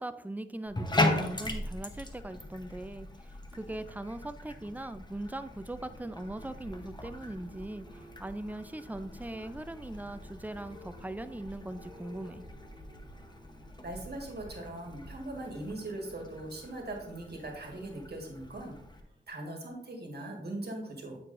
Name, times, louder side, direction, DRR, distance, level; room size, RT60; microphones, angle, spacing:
voice 1, 0.0-12.4, right 1 dB, 10° right, 11 dB, 0.4 m, -40 dB
Bathtub (filling or washing), 0.7-19.0, left 2 dB, 25° left, 0.8 m, -39 dB
sound 1, 5.2-18.5 19.1-19.4 19.7-19.8, right 1 dB, 25° right, 1.6 m, -53 dB
voice 2, 13.8-18.7 19.3-21.2, right 1 dB, 60° right, 1 dB, 1.5 m, -40 dB
8.3 x 4.7 x 2.5 m, 0.80 s
cardioid pair, 60°, 19 cm